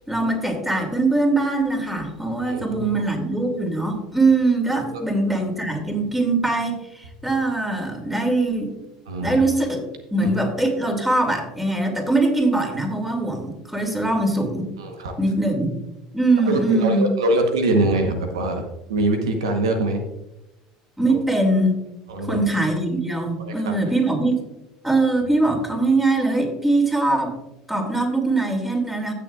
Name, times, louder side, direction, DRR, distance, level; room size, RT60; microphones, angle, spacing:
voice 1, 0.1-8.7 9.2-9.8 10.1-14.7 15.2-15.7 16.1-17.1 21.0-21.8 22.2-24.3 24.8-27.4 27.7-29.1, right 2 dB, 5° right, 3 dB, 2.6 m, -22 dB
voice 2, 2.4-2.8 4.9-5.0 9.1-9.4 10.2-10.3 14.8-15.1 16.5-20.0 22.1-22.4 23.4-23.9, right 2 dB, 90° right, 5 dB, 1.1 m, -23 dB
16.0 x 6.6 x 2.4 m, 0.92 s
hypercardioid pair, 80°, 3 cm